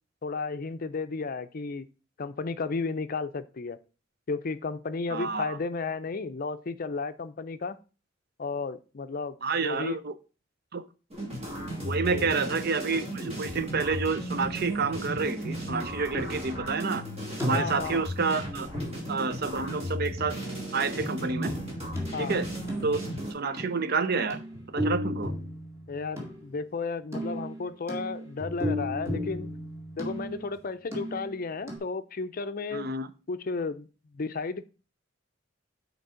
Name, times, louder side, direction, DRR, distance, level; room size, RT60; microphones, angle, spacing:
voice 1, 0.2-1.9 2.2-3.8 4.3-7.8 8.4-10.0 12.1-12.3 17.5-18.0 22.1-22.4 25.9-29.5 30.0-32.9 33.3-33.9 34.1-34.7, left 4 dB, 45° left, 0.5 m, -33 dB
voice 2, 5.1-5.6 9.4-10.1 10.7-10.8 11.8-17.0 17.4-18.7 19.1-20.4 20.7-21.6 22.2-22.5 22.8-23.0 23.3-24.4 24.7-25.4 32.7-33.1, right 4 dB, 55° right, 0.6 m, -29 dB
sound 1, 11.1-23.3, equal, 30° right, 2.5 m, -35 dB
sound 2, 16.1-16.6 17.4-18.1 18.7-19.7 21.0-23.0 23.6-23.9 24.3-26.5 27.1-30.6 30.9-31.4 31.7-31.8, equal, 15° right, 2.2 m, -35 dB
8.1 x 4.5 x 5.0 m
head